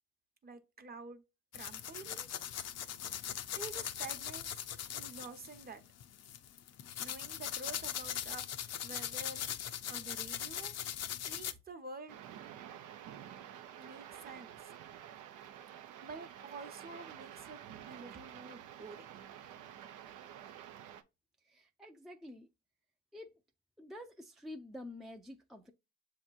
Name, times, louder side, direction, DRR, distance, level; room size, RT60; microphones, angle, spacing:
voice 1, 0.4-1.2 1.5-2.3 3.2-3.3 3.6-4.5 4.9-5.8 7.0-9.5 9.9-10.7 11.3-12.2 13.7-14.7 16.0-17.6 17.9-19.1, right 3 dB, 30° right, 0.9 m, -49 dB
sound 1, 1.5-11.5, left 10 dB, 60° left, 0.5 m, -40 dB
sound 2, 12.1-21.0, right 10 dB, 90° right, 0.6 m, -50 dB
voice 2, 21.4-22.5 23.1-23.4 23.8-25.7, left 1 dB, ahead, 0.4 m, -49 dB
7.1 x 2.9 x 2.4 m
cardioid pair, 90°, 30 cm